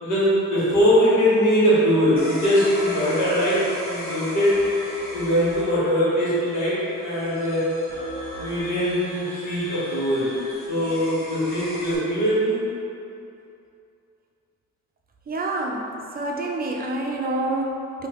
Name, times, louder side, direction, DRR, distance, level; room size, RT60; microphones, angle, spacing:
voice 1, 0.0-4.6 5.1-7.6 8.4-10.3 10.7-12.6, equal, 85° left, -9 dB, 1.4 m, -21 dB
sound 1, 2.2-12.0, equal, 30° left, 1.1 m, -37 dB
voice 2, 15.3-18.1, right 2 dB, 30° right, 0 dB, 0.5 m, -27 dB
4.7 x 2.8 x 3.0 m, 2.6 s
cardioid pair, 90°, 30 cm